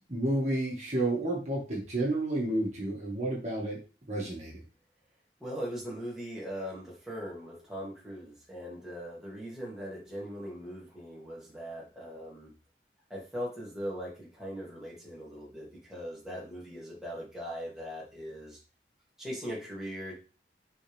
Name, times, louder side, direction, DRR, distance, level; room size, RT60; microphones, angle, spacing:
voice 1, 0.1-3.8 4.1-4.5, right 1 dB, 40° right, -4 dB, 2.2 m, -30 dB
voice 2, 5.4-12.5 13.1-18.6 19.2-20.2, equal, 5° right, -6 dB, 2.3 m, -40 dB
5.5 x 5.0 x 3.5 m, 0.33 s
head